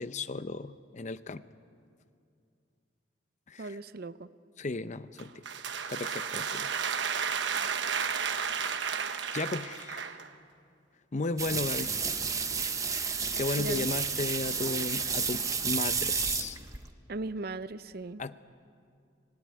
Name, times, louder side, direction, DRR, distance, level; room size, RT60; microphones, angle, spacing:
voice 1, 0.0-1.4 3.5-3.7 4.6-5.3 5.9-6.7 8.7-8.8 9.3-10.2 11.1-11.9 13.0-16.6 18.2-18.4, left 3 dB, 40° left, 13 dB, 0.6 m, -35 dB
voice 2, 3.6-4.3 13.6-13.9 17.1-18.2, right 2 dB, 50° right, 14 dB, 0.6 m, -37 dB
sound 1, 5.2-10.3, right 6 dB, 70° right, 1.1 m, -32 dB
sound 2, 11.4-16.9, right 5 dB, 15° right, 0.9 m, -31 dB
26.0 x 18.5 x 9.6 m, 2.4 s
head